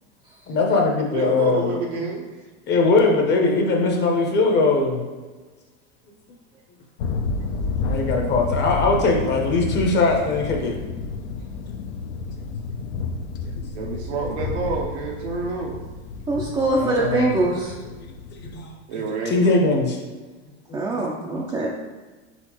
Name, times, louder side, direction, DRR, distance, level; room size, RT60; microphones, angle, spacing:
voice 1, 0.5-2.1 2.7-5.1 7.8-10.8 13.6-13.9 16.5-17.4 18.3-20.0 21.3-21.4, left 3 dB, 30° left, 1 dB, 0.8 m, -21 dB
voice 2, 1.1-2.4 13.7-15.8 18.9-19.4, right 4 dB, 85° right, -2 dB, 0.7 m, -28 dB
sound 1, 7.0-18.7, left 4 dB, 75° left, 0.6 m, -30 dB
voice 3, 16.3-17.7 20.7-21.7, right 2 dB, 10° right, -4 dB, 0.3 m, -23 dB
4.2 x 3.8 x 2.9 m, 1.3 s
supercardioid pair, 125°, 33 cm